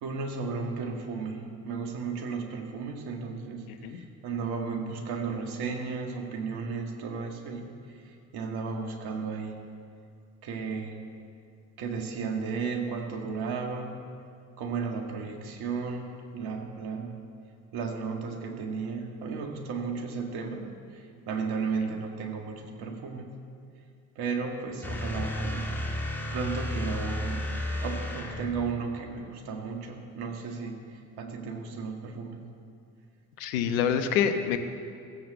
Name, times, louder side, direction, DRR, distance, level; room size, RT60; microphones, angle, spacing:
voice 1, 0.0-7.7 8.1-9.5 10.4-10.9 11.8-14.0 14.6-17.2 17.7-23.3 24.2-25.7 26.3-27.5 27.8-30.8 31.2-32.4, right 5 dB, 65° right, 3 dB, 2.0 m, -34 dB
voice 2, 3.7-4.0 33.4-34.6, left 8 dB, 70° left, 8 dB, 1.1 m, -26 dB
sound 1, 24.8-28.8, left 1 dB, 5° left, 2.2 m, -32 dB
16.0 x 7.7 x 7.9 m, 2.4 s
hypercardioid pair, 55°, 42 cm